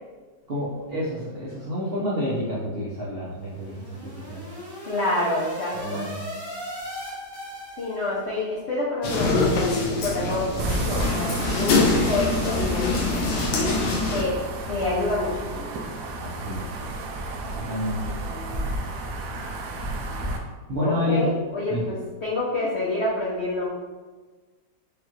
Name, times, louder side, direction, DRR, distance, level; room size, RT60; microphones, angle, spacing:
voice 1, 0.5-3.7 4.1-4.4 5.7-6.2 13.5-13.9 16.2-16.7 17.7-18.1 20.7-21.3 21.7-21.8, left 1 dB, 75° right, -8 dB, 0.5 m, -29 dB
sound 1, 3.3-8.3, equal, 20° left, 0.6 m, -38 dB
voice 2, 4.8-6.0 7.8-12.6 14.1-14.3 14.7-15.8 20.8-23.7, left 2 dB, 85° left, -6 dB, 0.5 m, -27 dB
sound 2, 9.0-14.2, left 3 dB, 65° left, 1.1 m, -24 dB
sound 3, 10.6-20.4, right 1 dB, 90° right, 1.3 m, -31 dB
4.9 x 2.3 x 3.0 m, 1.3 s
omnidirectional pair, 2.1 m